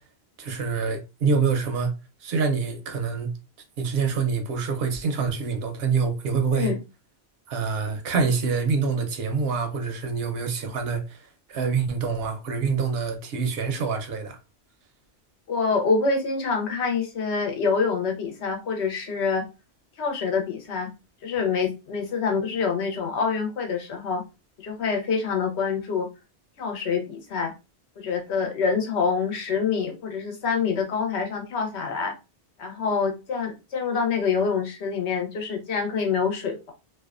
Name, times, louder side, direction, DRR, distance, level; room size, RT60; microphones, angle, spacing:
voice 1, 0.4-1.9 2.2-3.3 3.8-6.7 7.5-11.2 11.5-14.4, right 5 dB, 70° right, 0.8 m, -26 dB
voice 2, 15.5-19.4 20.0-20.9 21.2-24.2 24.6-26.1 26.6-27.5 28.0-32.1 32.6-36.7, left 5 dB, 85° left, 1.0 m, -26 dB
2.6 x 2.1 x 2.3 m
omnidirectional pair, 1.1 m